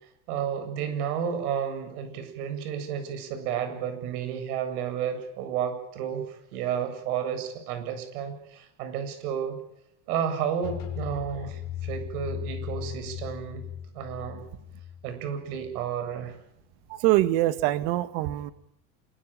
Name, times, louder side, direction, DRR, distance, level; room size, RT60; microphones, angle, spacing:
voice 1, 0.3-9.6 10.1-13.6 13.9-14.4 15.0-16.4, right 8 dB, 80° right, 9 dB, 7.9 m, -32 dB
sound 1, 10.6-16.3, left 10 dB, 45° left, 6.3 m, -38 dB
voice 2, 16.9-18.5, right 16 dB, 60° right, 13 dB, 1.9 m, -24 dB
27.0 x 24.0 x 9.0 m, 0.75 s
cardioid pair, 170°, 44 cm